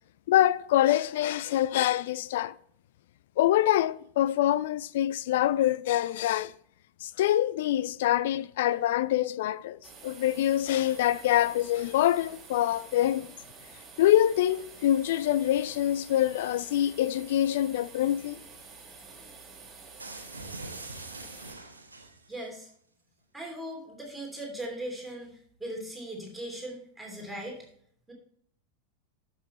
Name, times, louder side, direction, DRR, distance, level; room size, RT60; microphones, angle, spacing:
voice 1, 0.3-2.5 3.4-6.5 7.0-13.3 14.0-18.4, left 12 dB, 55° left, 0.3 m, -25 dB
sound 1, 9.8-21.5, right 4 dB, 20° right, 1.8 m, -49 dB
sound 2, 20.0-22.4, right 2 dB, 80° right, 1.2 m, -43 dB
voice 2, 22.3-22.7 23.3-27.7 28.1-28.2, right 1 dB, 5° right, 2.9 m, -39 dB
12.0 x 6.1 x 3.2 m
figure-of-eight pair, 90°, 0 cm